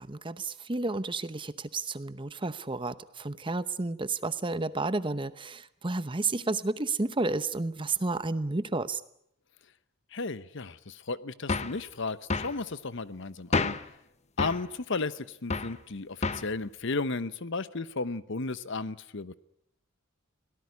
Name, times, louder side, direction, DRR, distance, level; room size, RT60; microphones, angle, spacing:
voice 1, 0.0-9.0, right 3 dB, 25° right, 14 dB, 0.9 m, -31 dB
voice 2, 10.1-13.8 14.4-19.3, left 3 dB, 60° left, 15 dB, 1.0 m, -34 dB
sound 1, 11.5-11.8 12.3-12.6 13.5-13.9 14.4-14.7 15.5-15.8 16.2-16.5, left 3 dB, 35° left, 0.9 m, -29 dB
24.0 x 17.5 x 9.5 m, 0.75 s
head